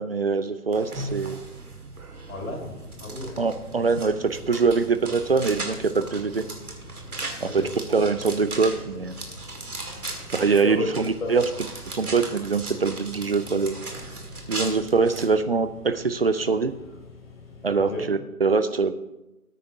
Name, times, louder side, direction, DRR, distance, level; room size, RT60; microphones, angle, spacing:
voice 1, 0.0-1.4 3.4-6.4 7.4-7.6 7.9-9.2 10.3-11.4 11.9-13.8 14.5-16.7 17.6-18.9, right 4 dB, 40° right, 11 dB, 0.5 m, -23 dB
sound 1, 0.7-15.2, right 2 dB, 75° right, 2.2 m, -37 dB
voice 2, 2.3-3.4 7.4-7.7 9.9-10.4 10.6-10.9 11.2-11.4 17.7-18.1, left 3 dB, 65° left, 1 dB, 3.7 m, -34 dB
sound 2, 2.3-18.0, left 4 dB, 40° left, 4.0 m, -47 dB
17.5 x 9.3 x 2.7 m, 0.97 s
figure-of-eight pair, 145°, 45 cm